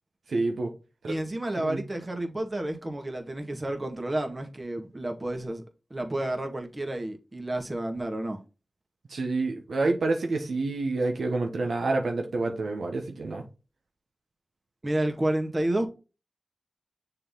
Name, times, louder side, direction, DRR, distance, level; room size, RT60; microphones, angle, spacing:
voice 1, 0.3-0.7 1.0-1.1 1.6-1.8 9.1-13.4, right 3 dB, 85° right, 1.1 m, -28 dB
voice 2, 1.1-5.6 5.9-8.4 14.8-15.9, right 1 dB, 35° right, 1.7 m, -30 dB
6.6 x 4.1 x 3.7 m
cardioid pair, 40°, 0 cm